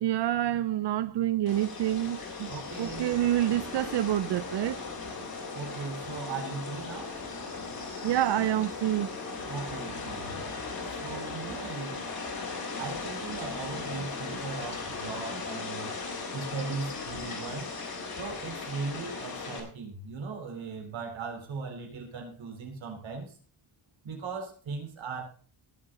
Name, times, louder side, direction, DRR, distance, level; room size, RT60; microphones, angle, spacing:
voice 1, 0.0-2.5 2.8-4.8 8.0-9.2, right 13 dB, 65° right, 0.5 m, -27 dB
sound 1, 1.5-19.6, left 4 dB, 50° left, 3.8 m, -38 dB
voice 2, 2.5-3.1 5.5-7.2 9.5-10.5 10.9-12.1 12.8-15.9 16.3-17.7 18.1-23.3 24.0-25.2, right 4 dB, 80° right, 4.1 m, -38 dB
18.5 x 7.7 x 4.1 m
wide cardioid pair, 180°, 46 cm